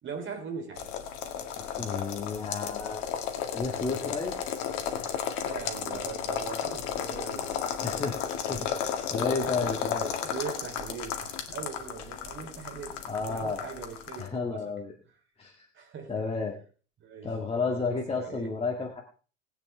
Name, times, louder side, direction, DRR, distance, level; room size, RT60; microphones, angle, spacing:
voice 1, 0.0-1.6 5.4-7.6 8.0-8.1 8.8-8.9 9.6-9.8 10.2-13.0 13.3-14.8 15.7-16.1 17.0-17.3 17.6-18.5, right 6 dB, 30° right, 5 dB, 3.5 m, -41 dB
sound 1, 0.8-14.3, left 8 dB, 50° left, 2.0 m, -34 dB
voice 2, 1.6-3.0 3.5-4.4 7.8-8.2 8.5-8.7 9.1-10.1 13.0-13.7 14.2-14.9 15.4-15.7 16.1-16.6 17.2-19.0, left 4 dB, 15° left, -1 dB, 2.2 m, -32 dB
20.0 x 9.0 x 3.5 m, 0.39 s
figure-of-eight pair, 80°, 37 cm